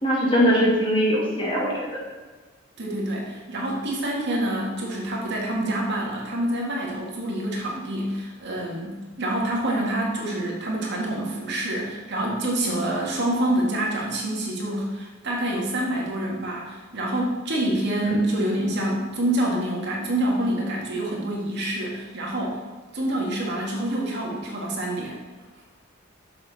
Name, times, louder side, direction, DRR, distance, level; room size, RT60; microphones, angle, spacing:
voice 1, 0.0-2.0 18.0-18.1, equal, 25° left, -4 dB, 1.8 m, -21 dB
voice 2, 2.8-22.6 22.9-25.2, right 1 dB, 55° right, -2 dB, 1.8 m, -27 dB
7.0 x 6.7 x 4.1 m, 1.4 s
head